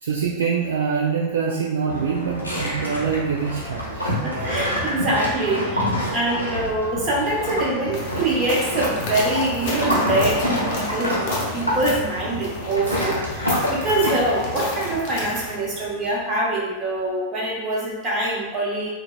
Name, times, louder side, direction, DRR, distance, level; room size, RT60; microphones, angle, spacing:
voice 1, 0.0-4.2, right 6 dB, 65° right, -3 dB, 0.3 m, -24 dB
sound 1, 1.9-16.1, equal, 90° left, 0.6 m, -27 dB
voice 2, 4.1-18.9, right 2 dB, 30° right, -4 dB, 0.9 m, -24 dB
sound 2, 7.9-15.6, left 2 dB, 50° left, 0.7 m, -32 dB
3.7 x 2.3 x 2.2 m, 1.2 s
figure-of-eight pair, 90°, 0 cm